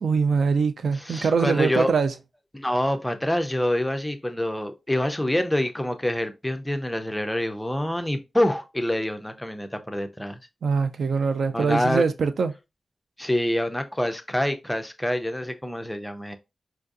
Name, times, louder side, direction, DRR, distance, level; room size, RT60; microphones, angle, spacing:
voice 1, 0.0-2.1 10.6-12.5, right 5 dB, 70° right, 0.3 m, -23 dB
voice 2, 1.0-1.9 2.5-10.4 11.5-12.0 13.2-16.4, left 1 dB, 5° left, 0.4 m, -26 dB
4.5 x 2.5 x 2.4 m
wide cardioid pair, 160°, 0 cm